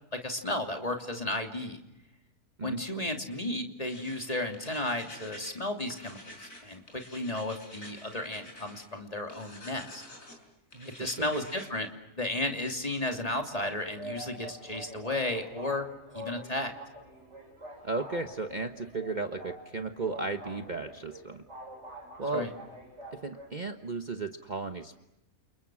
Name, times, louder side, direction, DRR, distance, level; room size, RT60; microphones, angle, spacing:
voice 1, 0.1-1.8 2.6-10.0 10.8-11.9 12.2-15.8 16.1-16.7 22.3-22.5, left 1 dB, 25° left, 4 dB, 3.0 m, -33 dB
sound 1, 3.8-5.5 5.8-8.8 9.3-10.4 10.7-11.7, left 1 dB, 60° left, 6.3 m, -49 dB
voice 2, 10.7-11.3 17.8-21.4 22.2-22.5 23.1-25.0, right 3 dB, 30° right, 6 dB, 1.3 m, -35 dB
sound 2, 13.1-23.5, equal, 50° right, 6.7 m, -46 dB
29.5 x 29.5 x 6.3 m, 0.88 s
omnidirectional pair, 1.6 m